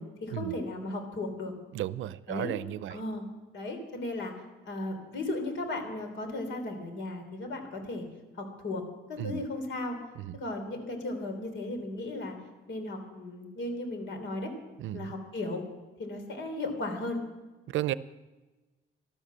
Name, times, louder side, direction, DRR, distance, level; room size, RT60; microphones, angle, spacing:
voice 1, 0.0-1.5 2.3-2.5 2.9-3.2 3.5-4.3 4.6-8.0 8.3-8.8 9.1-10.0 10.3-12.3 12.7-14.5 14.9-15.6 16.0-17.2, left 2 dB, 70° left, 6 dB, 3.4 m, -35 dB
voice 2, 1.7-3.0 9.2-9.4 10.2-10.4 14.8-15.1 17.7-17.9, right 13 dB, 80° right, 17 dB, 0.6 m, -33 dB
13.0 x 12.5 x 7.4 m, 1.2 s
cardioid pair, 90°, 20 cm